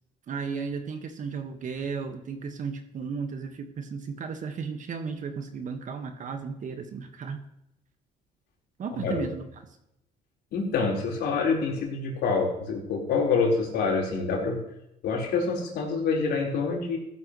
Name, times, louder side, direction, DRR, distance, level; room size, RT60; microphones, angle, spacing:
voice 1, 0.3-7.4 8.8-9.5, right 5 dB, 50° right, 5 dB, 1.8 m, -34 dB
voice 2, 9.0-9.3 10.5-14.6 15.0-17.0, left 4 dB, 75° left, -1 dB, 4.8 m, -26 dB
16.0 x 11.5 x 3.3 m, 0.80 s
cardioid pair, 110°, 17 cm